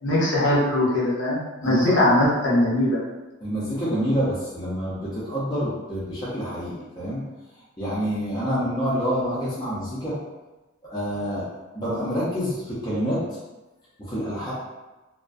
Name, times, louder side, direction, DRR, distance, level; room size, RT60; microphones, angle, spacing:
voice 1, 0.0-3.0, left 1 dB, 60° left, -6 dB, 0.7 m, -21 dB
voice 2, 3.4-7.2 7.8-10.2 10.9-11.5 11.7-13.2 14.0-14.5, equal, 20° left, -9 dB, 0.5 m, -27 dB
2.3 x 2.2 x 2.4 m, 1.1 s
head